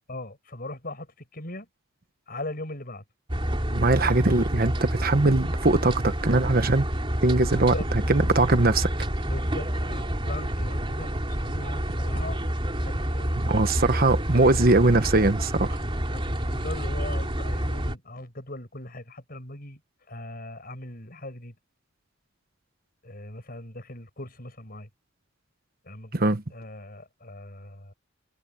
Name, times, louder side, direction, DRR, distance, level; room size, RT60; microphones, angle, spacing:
voice 1, 0.1-1.7 2.3-3.0 7.5-7.9 9.3-12.4 12.7-13.3 16.1-19.8 20.1-21.6 23.0-24.9 25.8-26.2 26.5-27.9, left 1 dB, 50° left, 7.4 m, -39 dB
sound 1, 3.3-17.9, equal, 25° right, 3.3 m, -28 dB
voice 2, 3.7-6.8 7.2-7.7 8.1-8.9 13.4-15.8 26.1-26.4, right 2 dB, 50° right, 1.2 m, -21 dB
head